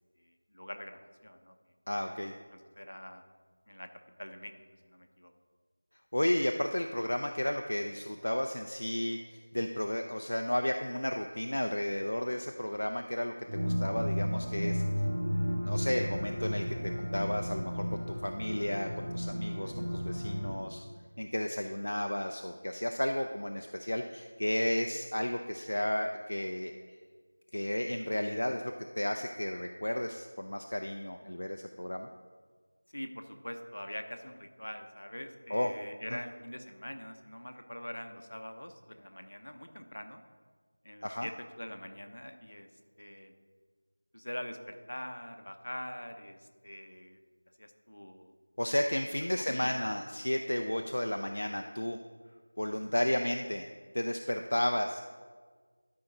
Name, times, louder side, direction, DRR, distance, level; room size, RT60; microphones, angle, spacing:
voice 1, 0.2-1.5 2.2-3.3 3.7-3.9 4.2-4.5 4.9-5.3 32.9-40.2 40.8-42.7 43.0-43.3 44.1-47.2 47.6-48.3 49.4-49.8, equal, 90° left, 6 dB, 0.9 m, -44 dB
voice 2, 1.9-2.3 6.1-14.8 15.6-20.9 21.2-26.7 27.5-32.1 35.5-35.7 41.0-41.3 48.6-52.0 52.6-53.7 53.9-55.0, left 1 dB, 75° left, 4 dB, 0.5 m, -33 dB
sound 1, 13.5-20.5, equal, 35° right, 2.1 m, -33 dB
12.0 x 4.9 x 3.9 m, 1.5 s
figure-of-eight pair, 180°, 0 cm